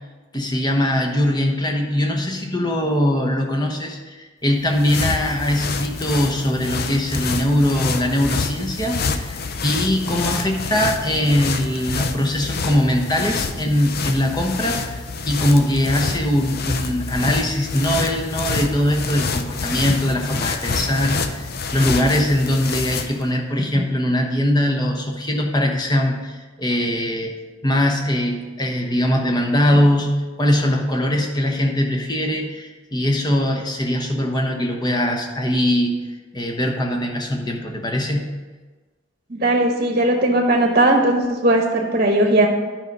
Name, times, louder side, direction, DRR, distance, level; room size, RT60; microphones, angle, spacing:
voice 1, 0.3-15.0 15.2-27.4 27.6-36.0 36.3-38.3, left 1 dB, 20° left, 2 dB, 1.1 m, -21 dB
sound 1, 4.5-23.3, left 4 dB, 50° left, 0.6 m, -27 dB
voice 2, 39.3-42.5, right 1 dB, 40° right, 1 dB, 1.1 m, -18 dB
10.5 x 5.3 x 5.4 m, 1.3 s
head